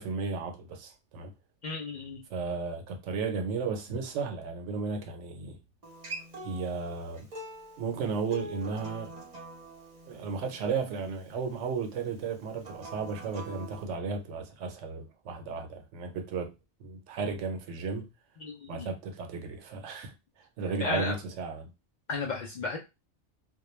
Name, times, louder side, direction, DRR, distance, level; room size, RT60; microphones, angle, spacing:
voice 1, 0.0-1.3 2.3-5.6 6.4-7.3 7.8-9.1 10.1-16.5 16.8-18.1 18.7-20.1 20.6-21.7, right 4 dB, 90° right, 0.9 m, -34 dB
voice 2, 1.6-2.2 18.4-18.9 20.8-21.1 22.1-22.8, left 3 dB, 55° left, 0.5 m, -33 dB
Acoustic guitar, 5.8-11.0 12.6-13.8, right 2 dB, 40° right, 0.7 m, -44 dB
2.2 x 2.2 x 3.0 m
omnidirectional pair, 1.2 m